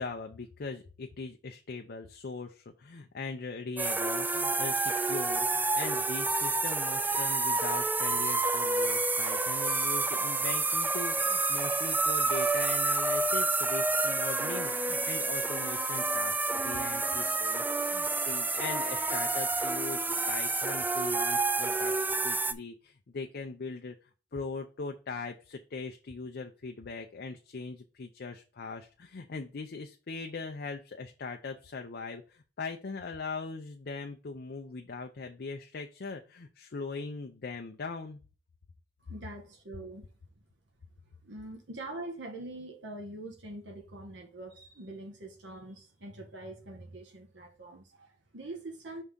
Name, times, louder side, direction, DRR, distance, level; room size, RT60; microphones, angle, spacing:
voice 1, 0.0-23.9 24.3-38.2, left 4 dB, 60° left, 0.5 m, -40 dB
sound 1, 3.8-22.5, right 3 dB, 10° right, 0.3 m, -29 dB
voice 2, 39.0-40.0 41.2-49.0, right 2 dB, 80° right, 1.3 m, -44 dB
5.4 x 3.6 x 5.2 m
head